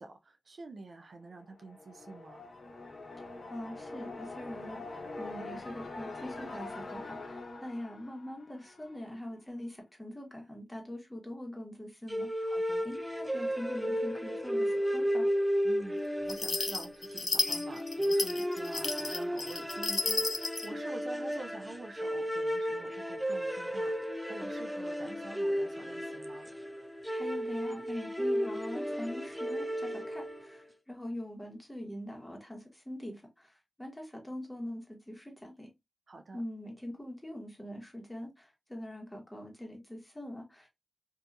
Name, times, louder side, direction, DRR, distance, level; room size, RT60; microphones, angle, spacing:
voice 1, 0.0-2.5 12.4-12.9 15.6-26.5 36.1-36.4, right 2 dB, 75° right, 0.5 m, -48 dB
sound 1, 1.4-9.2, left 2 dB, 75° left, 0.8 m, -44 dB
voice 2, 3.2-12.5 12.8-15.3 27.1-35.7 36.3-40.7, left 1 dB, 15° left, 1.3 m, -43 dB
sound 2, 12.1-30.6, equal, 5° right, 0.4 m, -34 dB
sound 3, 16.3-20.7, left 3 dB, 55° left, 0.4 m, -33 dB
2.7 x 2.6 x 2.4 m
cardioid pair, 55°, 0 cm